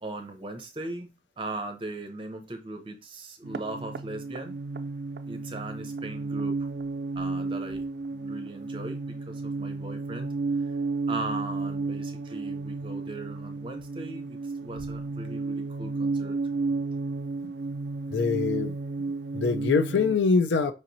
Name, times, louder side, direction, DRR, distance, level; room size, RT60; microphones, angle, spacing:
voice 1, 0.0-4.6 5.3-6.7 7.2-7.8 8.1-10.3 11.1-16.4, right 2 dB, 30° right, 0.6 m, -38 dB
sound 1, 3.4-20.2, right 3 dB, 65° right, 0.3 m, -32 dB
voice 2, 18.1-20.7, left 4 dB, 80° left, 0.4 m, -25 dB
4.9 x 2.9 x 2.6 m
head